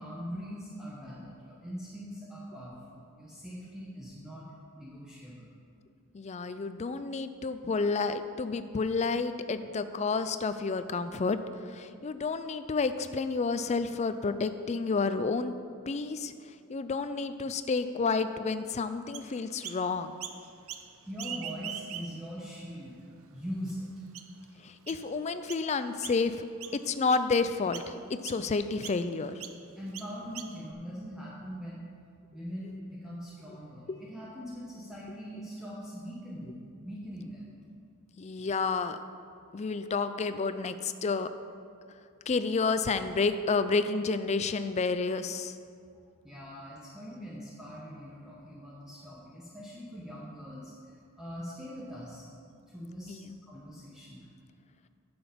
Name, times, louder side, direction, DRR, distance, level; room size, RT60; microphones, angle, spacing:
voice 1, 0.0-4.5 4.7-5.5 21.1-23.0 23.3-23.9 29.7-31.9 32.3-37.4 46.2-52.3 52.7-54.3, equal, 5° right, -7 dB, 1.1 m, -42 dB
voice 2, 6.1-11.4 11.6-15.5 15.9-16.3 16.7-20.2 24.6-26.4 26.8-29.3 33.9-34.0 38.2-39.0 39.5-41.3 42.3-45.5 53.1-53.3, left 4 dB, 30° left, 11 dB, 0.4 m, -30 dB
Chirp tweet, 19.1-19.8 20.2-20.9 21.1-22.3 22.9-23.0 23.7-23.8 24.1-24.4 24.9-25.0 25.5-25.7 26.0-26.3 26.6-27.3 27.7-27.9 28.2-28.4 28.8-29.0 29.4-29.6 29.9-30.7, right 9 dB, 70° right, 0.6 m, -42 dB
9.9 x 7.0 x 5.2 m, 2.3 s
head